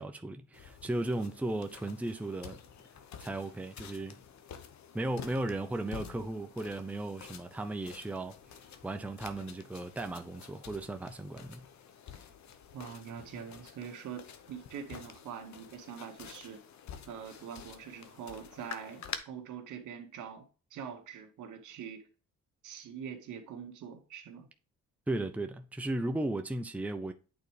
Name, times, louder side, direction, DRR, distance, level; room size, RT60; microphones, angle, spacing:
voice 1, 0.0-2.6 3.2-4.2 4.9-8.3 8.8-11.7 25.1-27.1, right 2 dB, 5° right, 0.6 m, -36 dB
sound 1, 0.5-19.2, left 8 dB, 65° left, 1.0 m, -49 dB
voice 2, 12.7-16.6 17.1-20.5 20.7-22.0 22.6-24.5, right 7 dB, 80° right, 1.9 m, -44 dB
9.1 x 4.0 x 3.3 m
cardioid pair, 90°, 30 cm